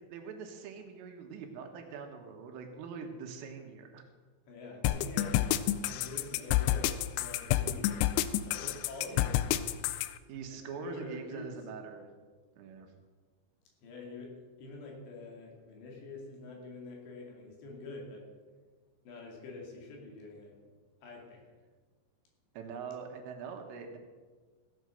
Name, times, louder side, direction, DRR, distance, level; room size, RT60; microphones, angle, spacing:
voice 1, 0.1-4.0 9.1-9.3 10.3-12.1 12.6-12.9 22.6-24.0, right 6 dB, 80° right, 4 dB, 3.9 m, -43 dB
voice 2, 4.5-5.6 5.8-8.1 8.5-9.7 10.5-11.5 13.8-14.3 14.6-18.2 19.0-20.6 21.0-21.4, left 2 dB, 65° left, -1 dB, 4.4 m, -46 dB
sound 1, 4.8-10.1, left 13 dB, 90° left, 2.6 m, -29 dB
16.0 x 8.1 x 6.4 m, 1.4 s
omnidirectional pair, 5.8 m